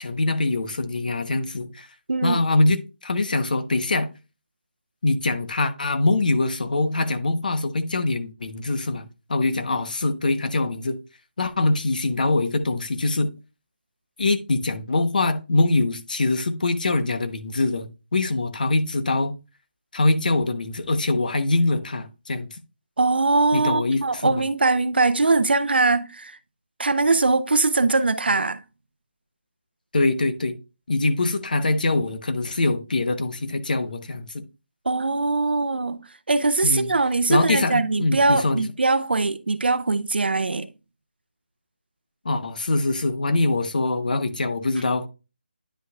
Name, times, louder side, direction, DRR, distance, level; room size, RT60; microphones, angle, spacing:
voice 1, 0.0-1.9 2.2-4.1 5.0-11.0 11.4-13.3 14.2-19.3 19.9-22.6 23.5-24.4 29.9-30.6 30.9-34.4 36.6-36.9 37.3-38.6 42.2-45.1, left 2 dB, 55° left, 1.0 m, -23 dB
voice 2, 2.1-2.4 23.0-26.3 26.8-28.6 34.9-40.7, right 3 dB, 75° right, 0.7 m, -21 dB
10.0 x 5.4 x 2.4 m
figure-of-eight pair, 170°, 6 cm